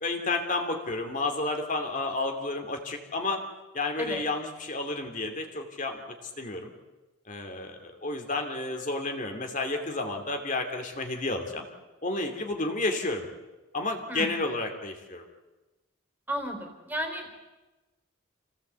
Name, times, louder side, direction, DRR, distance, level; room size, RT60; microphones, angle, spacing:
voice 1, 0.0-3.4 3.7-6.7 7.3-11.6 12.0-13.3 13.7-15.2, left 2 dB, 35° left, 4 dB, 2.7 m, -31 dB
voice 2, 16.3-17.4, equal, 10° right, 4 dB, 3.9 m, -33 dB
27.0 x 17.5 x 8.2 m, 1.1 s
head